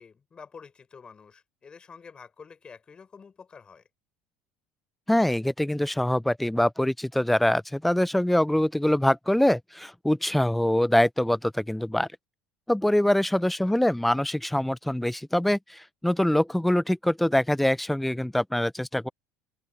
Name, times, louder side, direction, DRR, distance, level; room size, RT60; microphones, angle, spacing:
voice 1, 0.0-3.8 13.3-13.7, left 5 dB, 25° left, 6.4 m, -48 dB
voice 2, 5.1-12.1 12.7-19.1, left 1 dB, 5° left, 0.4 m, -24 dB
open air
supercardioid pair, 110°, 3 cm